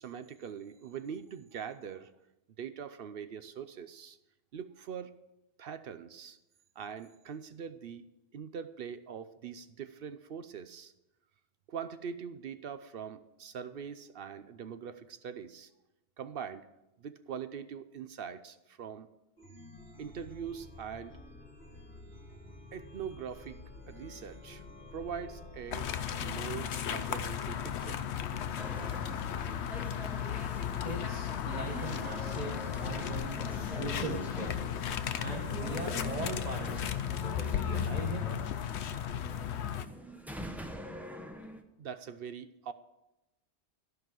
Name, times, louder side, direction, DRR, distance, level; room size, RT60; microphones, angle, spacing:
voice 1, 0.0-2.1 2.6-4.2 4.5-5.2 5.6-6.4 6.8-8.1 8.3-10.9 11.7-15.7 16.2-16.7 17.0-19.1 20.0-21.2 22.7-23.6 23.9-24.6 24.9-25.9 26.2-28.0 41.8-42.7, right 7 dB, 60° right, 12 dB, 0.7 m, -42 dB
Chime, 19.4-36.8, left 2 dB, 45° left, 1.9 m, -50 dB
sound 1, 25.7-39.9, left 9 dB, 75° left, 0.9 m, -35 dB
sound 2, 28.6-41.6, equal, ahead, 0.7 m, -44 dB
voice 2, 30.8-34.7 35.2-38.5, right 3 dB, 35° right, 1 dB, 1.2 m, -41 dB
13.5 x 5.4 x 7.5 m, 0.94 s
omnidirectional pair, 1.2 m